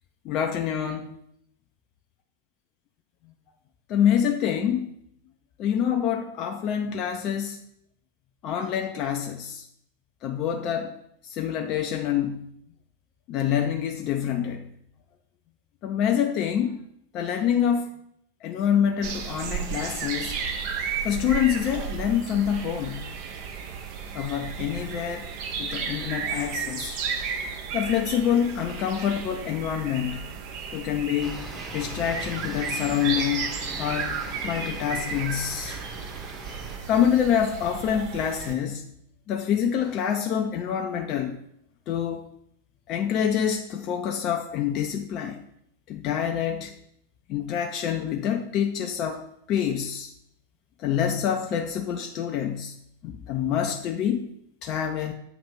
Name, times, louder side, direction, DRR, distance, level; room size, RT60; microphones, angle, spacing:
voice 1, 0.2-1.2 3.9-4.9 5.6-7.6 8.4-9.6 10.2-11.0 11.2-12.5 13.3-14.6 15.8-16.8 17.1-17.9 18.4-20.3 21.0-23.1 24.1-25.3 25.6-26.9 27.7-30.2 30.7-31.4 31.7-33.5 33.8-34.1 34.4-35.8 36.9-38.8 39.3-41.4 41.9-42.2 42.9-45.4 45.9-46.7 47.3-50.1 50.8-52.7 53.0-54.3 54.6-55.1, left 9 dB, 35° left, 0.5 m, -26 dB
sound 1, 19.0-38.5, right 6 dB, 45° right, 0.7 m, -34 dB
sound 2, 31.2-36.8, right 1 dB, 20° right, 1.1 m, -40 dB
7.0 x 2.9 x 5.2 m
figure-of-eight pair, 90°, 0 cm